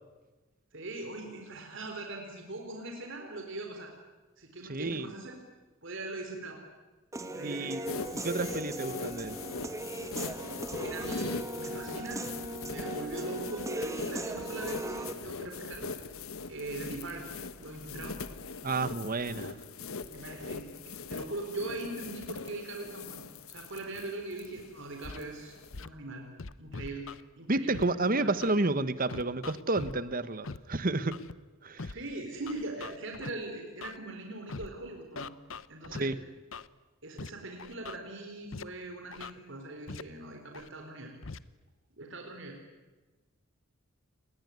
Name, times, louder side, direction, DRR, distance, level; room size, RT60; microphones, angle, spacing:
voice 1, 0.7-3.9 4.4-5.4 5.8-6.6 7.2-7.8 10.7-12.3 12.6-15.9 16.5-17.2 17.6-18.2 20.1-26.2 26.6-27.8 28.2-28.3 31.9-35.3 35.7-36.1 37.0-41.1 42.0-42.6, right 2 dB, 60° right, 3 dB, 4.1 m, -41 dB
voice 2, 4.7-5.1 7.4-7.8 8.2-9.4 18.6-19.6 27.5-31.2 31.6-31.9 36.0-36.2, right 2 dB, 45° right, 14 dB, 1.3 m, -30 dB
Human voice / Piano, 7.1-15.1, right 1 dB, 15° right, 1.7 m, -38 dB
sound 1, 7.9-25.8, left 4 dB, 85° left, 1.3 m, -41 dB
Scratching (performance technique), 25.0-25.2 25.7-25.9 26.4-27.2 27.7-27.8 28.4-28.5 29.1-29.9 30.4-30.6 31.1-31.3 31.8-31.9 32.5-33.3 33.8-34.0 34.5-34.7 35.2-36.0 36.5-36.7 37.2-37.3 37.6-38.0 38.5-38.6 39.1-39.3 39.9-40.0 40.5-40.7 41.2-41.4, left 4 dB, 65° left, 0.9 m, -41 dB
29.5 x 20.5 x 9.7 m, 1.2 s
head